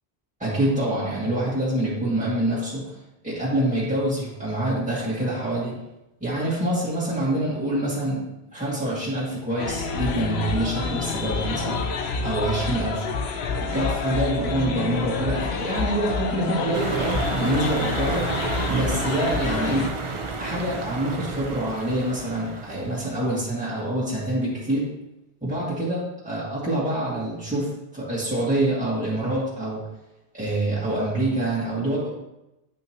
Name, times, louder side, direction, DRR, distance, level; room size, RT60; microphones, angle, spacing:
voice 1, 0.4-5.8 6.2-8.2 8.5-11.9 12.2-13.0 13.6-18.3 18.7-19.9 20.4-24.9 25.4-29.9 30.3-32.1, right 1 dB, 5° right, -8 dB, 2.2 m, -26 dB
sound 1, 9.6-19.9, left 4 dB, 90° left, 1.0 m, -28 dB
sound 2, 16.7-23.3, right 4 dB, 35° right, 0.6 m, -31 dB
9.1 x 5.6 x 3.0 m, 0.92 s
omnidirectional pair, 1.0 m